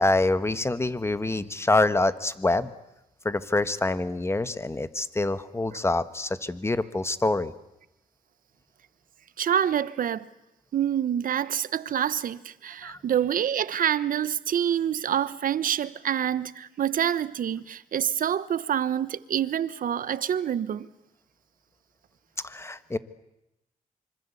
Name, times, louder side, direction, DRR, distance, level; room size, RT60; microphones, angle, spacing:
voice 1, 0.0-2.7 3.2-7.5 12.8-13.0 22.4-23.0, left 2 dB, 15° left, 1.4 m, -26 dB
voice 2, 9.4-10.3 10.7-20.9, right 9 dB, 65° right, 1.0 m, -27 dB
25.5 x 24.5 x 8.4 m
cardioid pair, 95°, 16 cm